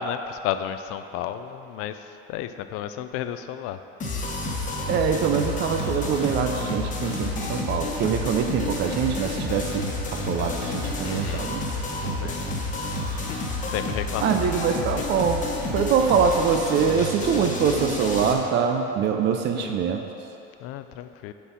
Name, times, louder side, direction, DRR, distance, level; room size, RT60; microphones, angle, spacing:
voice 1, 0.0-2.0 2.3-3.8 11.0-11.5 12.2-12.5 13.2-13.4 13.6-14.3 19.4-19.8 20.6-21.3, left 9 dB, 50° left, 10 dB, 0.5 m, -32 dB
sound 1, 4.0-18.3, left 2 dB, 25° left, 1.3 m, -30 dB
voice 2, 4.9-11.6 12.0-12.4 14.2-15.5 15.7-20.0, right 6 dB, 35° right, 4 dB, 0.5 m, -24 dB
7.2 x 4.6 x 6.9 m, 2.8 s
supercardioid pair, 115°, 31 cm